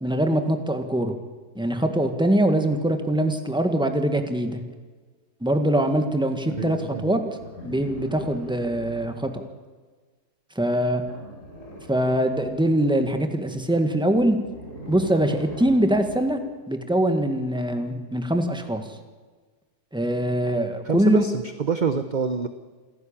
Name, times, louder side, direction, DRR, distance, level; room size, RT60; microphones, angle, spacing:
voice 1, 0.0-1.1 1.5-4.6 5.4-7.2 7.6-9.3 10.5-11.0 11.9-14.4 14.9-16.4 16.7-18.8 19.9-21.2, right 1 dB, 5° right, 6 dB, 1.7 m, -23 dB
voice 2, 6.5-7.2 20.8-22.5, right 5 dB, 35° right, 9 dB, 0.8 m, -27 dB
sound 1, 7.4-9.4 11.0-12.8 14.1-16.4 17.7-17.8, equal, 50° left, 4.7 m, -41 dB
28.5 x 10.5 x 8.9 m, 1.4 s
omnidirectional pair, 1.7 m